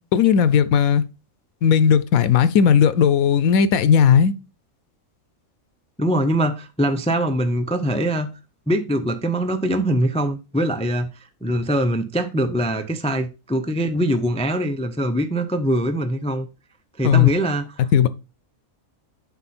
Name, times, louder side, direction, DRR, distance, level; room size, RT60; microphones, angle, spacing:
voice 1, 0.1-1.0 1.6-4.3 17.0-17.3 17.9-18.1, left 7 dB, 90° left, 1.1 m, -16 dB
voice 2, 6.0-8.3 8.7-11.1 11.4-16.5 17.0-17.9, right 1 dB, 10° left, 0.4 m, -22 dB
7.9 x 5.7 x 4.3 m
omnidirectional pair, 1.5 m